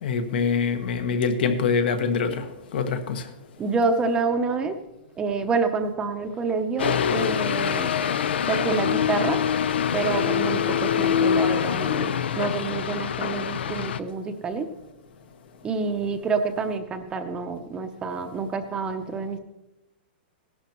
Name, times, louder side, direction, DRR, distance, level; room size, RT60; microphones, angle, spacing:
voice 1, 0.0-2.4 2.7-3.2, left 5 dB, 65° left, 1.2 m, -24 dB
voice 2, 3.6-4.8 5.2-7.9 8.5-9.4 9.9-14.7 15.6-19.4, right 4 dB, 15° right, 0.6 m, -27 dB
sound 1, 6.8-14.0, left 8 dB, 90° left, 0.6 m, -24 dB
16.5 x 11.5 x 3.0 m
hypercardioid pair, 155°, 6 cm